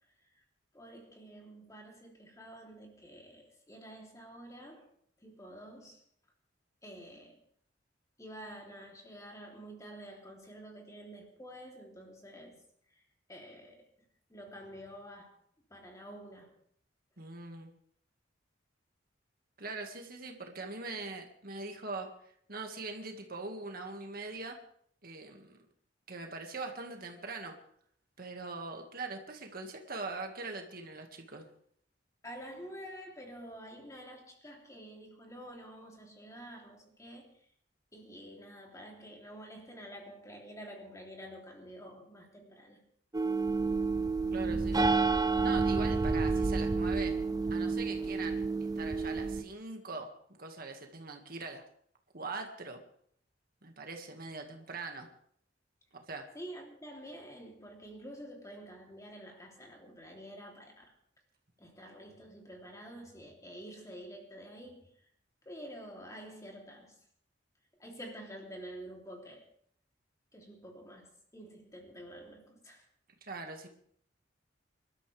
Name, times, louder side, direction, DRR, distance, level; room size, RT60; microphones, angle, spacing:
voice 1, 0.7-4.9 5.2-6.0 6.8-7.4 8.2-12.6 12.9-13.0 13.3-13.9 14.3-15.4 15.7-16.5 32.2-37.5 37.9-42.8 56.3-60.9 61.6-65.0 65.4-67.0 67.8-69.5 70.3-72.8, equal, 20° left, 0 dB, 3.2 m, -49 dB
voice 2, 17.2-17.7 19.6-22.1 22.5-24.6 25.0-25.6 26.1-27.5 28.2-31.5 44.3-44.8 45.4-47.2 47.5-48.4 48.8-50.1 50.4-51.6 52.1-52.8 53.6-55.1 55.9-56.3 73.2-73.7, right 3 dB, 55° right, 3 dB, 1.9 m, -42 dB
sound 1, 43.1-49.4, right 4 dB, 20° right, 0.6 m, -30 dB
26.0 x 12.5 x 3.4 m, 0.63 s
head